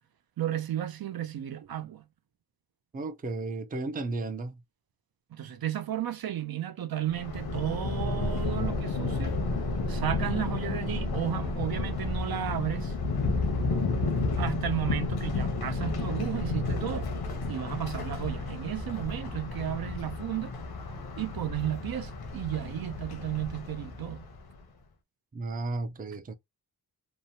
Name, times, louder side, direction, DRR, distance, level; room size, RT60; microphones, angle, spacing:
voice 1, 0.4-2.0 5.3-9.4 9.9-12.9 14.4-17.1 17.5-20.5 21.2-24.2, right 12 dB, 75° right, 0.5 m, -33 dB
voice 2, 2.9-4.6 25.3-26.3, right 3 dB, 25° right, 0.4 m, -34 dB
Thunder, 7.1-24.5, left 3 dB, 85° left, 0.7 m, -32 dB
3.0 x 2.0 x 2.7 m
wide cardioid pair, 140°, 36 cm